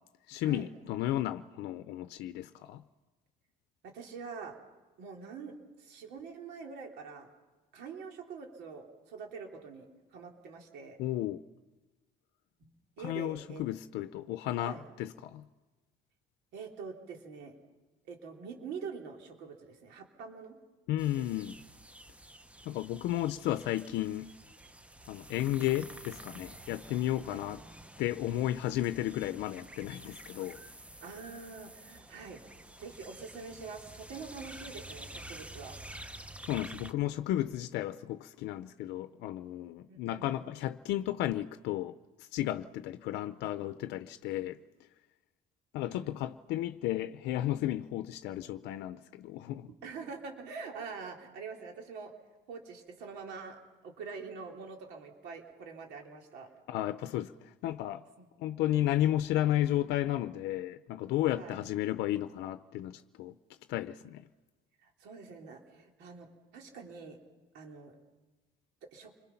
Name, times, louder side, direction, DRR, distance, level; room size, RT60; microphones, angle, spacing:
voice 1, 0.3-2.8 11.0-11.4 13.0-15.5 20.9-21.5 22.7-24.3 25.1-27.6 28.0-30.6 36.5-44.6 45.7-49.7 56.7-58.0 58.4-63.4 63.7-64.2, left 13 dB, 85° left, 0.6 m, -33 dB
voice 2, 3.8-4.5 5.0-5.5 5.8-7.3 7.7-9.9 10.1-11.0 13.0-13.6 14.6-14.8 16.5-17.5 18.1-20.6 21.1-21.2 27.3-27.5 31.0-32.4 32.8-35.8 39.9-40.4 45.8-46.1 49.8-52.1 52.5-56.5 58.2-58.3 61.3-61.6 64.8-67.2 67.5-68.0 68.9-69.1, right 5 dB, 90° right, 3.4 m, -45 dB
sound 1, 21.0-36.9, right 1 dB, 5° right, 0.8 m, -49 dB
29.0 x 22.0 x 5.8 m
cardioid pair, 110°, 17 cm